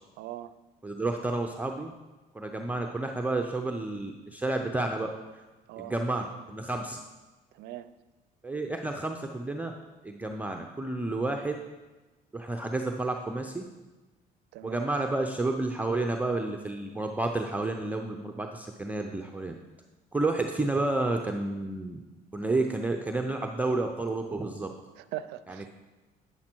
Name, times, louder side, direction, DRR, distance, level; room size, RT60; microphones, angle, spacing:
voice 1, 0.2-0.5 2.6-2.7 5.7-5.9 7.5-7.9 14.5-14.9 25.0-25.7, right 13 dB, 85° right, 14 dB, 0.4 m, -40 dB
voice 2, 0.8-1.9 2.3-5.1 5.8-7.0 8.4-9.7 10.0-11.5 12.3-13.6 14.6-19.5 20.1-22.0 22.3-24.7 25.5-25.7, right 2 dB, 10° right, 3 dB, 0.5 m, -30 dB
8.8 x 7.3 x 4.5 m, 1.2 s
cardioid pair, 110°, 17 cm